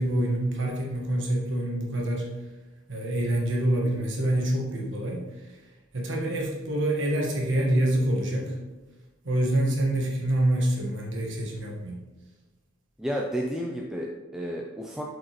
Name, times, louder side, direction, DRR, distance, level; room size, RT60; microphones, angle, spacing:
voice 1, 0.0-2.3 2.9-5.5 5.9-8.6 9.2-12.0, right 1 dB, 60° right, -2 dB, 1.5 m, -26 dB
voice 2, 13.0-15.0, equal, 5° right, -1 dB, 0.4 m, -31 dB
8.1 x 5.1 x 3.1 m, 1.2 s
head